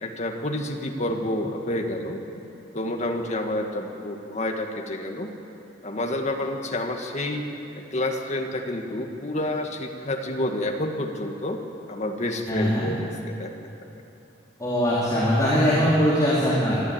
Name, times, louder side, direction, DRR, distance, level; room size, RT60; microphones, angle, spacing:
voice 1, 0.0-2.2 2.7-5.3 5.8-7.5 7.8-11.6 11.9-13.7, left 1 dB, 40° left, 3 dB, 2.0 m, -29 dB
voice 2, 12.5-12.9 14.6-16.8, equal, 20° left, -9 dB, 3.9 m, -21 dB
24.0 x 13.5 x 9.0 m, 2.8 s
head